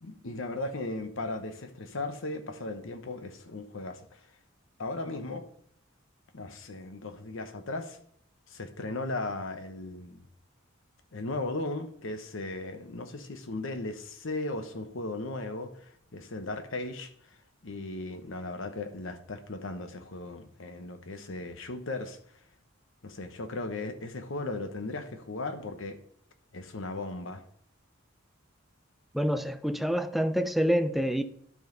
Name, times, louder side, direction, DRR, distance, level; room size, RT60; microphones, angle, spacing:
voice 1, 0.0-4.2 4.8-5.4 6.3-8.0 8.5-10.2 11.1-17.1 17.6-22.2 23.0-26.0 26.5-27.4, left 2 dB, 70° left, 1.0 m, -37 dB
voice 2, 29.1-31.2, equal, ahead, 0.5 m, -27 dB
12.5 x 5.3 x 3.9 m
head